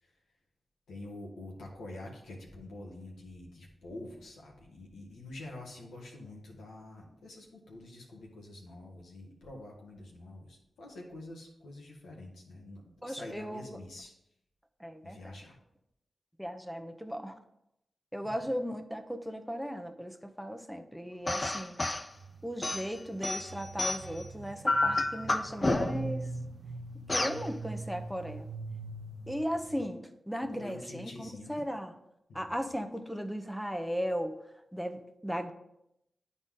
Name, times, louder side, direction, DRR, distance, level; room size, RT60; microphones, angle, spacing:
voice 1, 0.9-14.1 15.0-15.6 18.2-18.3 30.5-31.6, left 2 dB, 90° left, -2 dB, 1.5 m, -47 dB
voice 2, 13.0-13.7 14.8-15.3 16.4-17.4 18.1-21.8 22.4-26.3 27.1-28.5 29.3-31.9 32.3-34.4 34.7-35.5, equal, ahead, 6 dB, 0.8 m, -37 dB
sound 1, 21.3-22.1 22.6-24.2 24.7-26.1 27.1-27.4, left 2 dB, 40° left, 0.6 m, -30 dB
sound 2, 22.1-29.8, right 3 dB, 90° right, 0.6 m, -42 dB
9.7 x 4.1 x 3.7 m, 0.82 s
cardioid pair, 40°, 0 cm